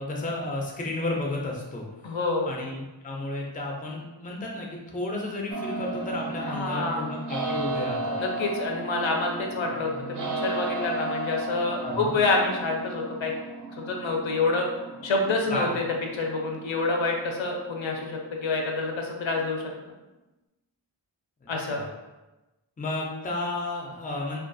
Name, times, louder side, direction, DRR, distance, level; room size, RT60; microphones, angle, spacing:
voice 1, 0.0-1.8 2.5-8.2 11.8-12.1 15.5-15.7 21.4-21.9 22.8-24.4, left 2 dB, 20° left, -1 dB, 0.4 m, -32 dB
voice 2, 2.0-2.5 6.4-7.0 8.2-9.9 10.4-13.3 13.7-14.7 15.0-15.8 16.1-19.6 21.5-21.8, left 3 dB, 75° left, 1 dB, 0.5 m, -27 dB
sound 1, 5.5-19.4, right 2 dB, 45° right, 0.4 m, -35 dB
2.4 x 2.3 x 2.5 m, 1.1 s
wide cardioid pair, 60°, 47 cm